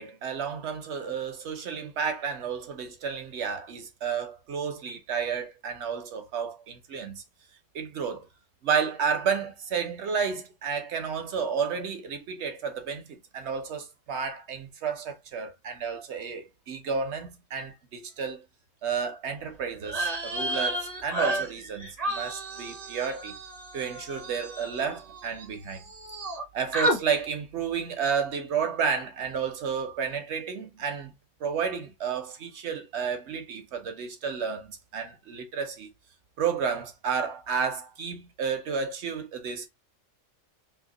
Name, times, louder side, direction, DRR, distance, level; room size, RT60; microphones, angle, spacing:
voice 1, 0.0-7.2 7.7-8.3 8.6-18.4 18.8-23.4 23.7-25.8 26.5-31.1 31.4-35.9 36.4-39.7, right 6 dB, 60° right, 1.0 m, -31 dB
sound 1, 19.8-25.5 25.7-26.4 26.7-27.0, right 1 dB, 35° right, 0.8 m, -31 dB
2.8 x 2.8 x 3.7 m
omnidirectional pair, 1.3 m